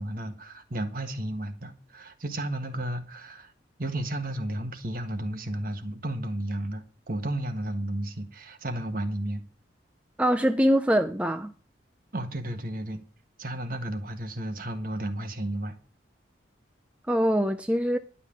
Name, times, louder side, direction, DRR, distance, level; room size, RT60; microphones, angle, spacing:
voice 1, 0.0-3.5 3.8-9.4 12.1-13.0 13.4-15.7, right 1 dB, 50° right, 1.5 m, -33 dB
voice 2, 10.2-11.5 17.1-18.0, equal, 5° right, 0.5 m, -23 dB
11.5 x 5.6 x 8.6 m
head